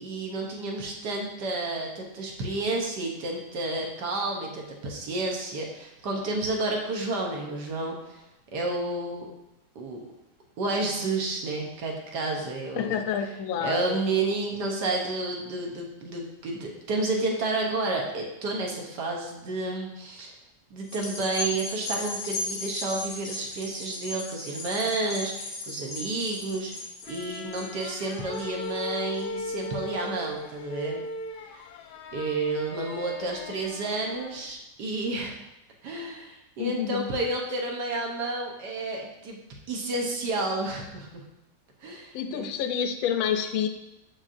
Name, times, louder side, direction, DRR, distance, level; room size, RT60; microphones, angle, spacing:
voice 1, 0.0-8.2 8.5-9.3 9.7-10.0 10.6-13.0 13.6-20.3 20.7-31.0 32.1-35.4 35.8-39.4 39.7-41.2 41.8-42.5, right 2 dB, 65° right, 0 dB, 1.5 m, -31 dB
voice 2, 12.7-14.0 36.6-37.1 42.1-43.7, left 8 dB, 90° left, 6 dB, 0.7 m, -28 dB
sound 1, 20.8-29.5 30.0-30.1, left 2 dB, 50° left, 1.1 m, -37 dB
sound 2, 27.0-34.5, left 3 dB, 70° left, 1.1 m, -38 dB
6.3 x 5.9 x 2.6 m, 0.90 s
omnidirectional pair, 2.0 m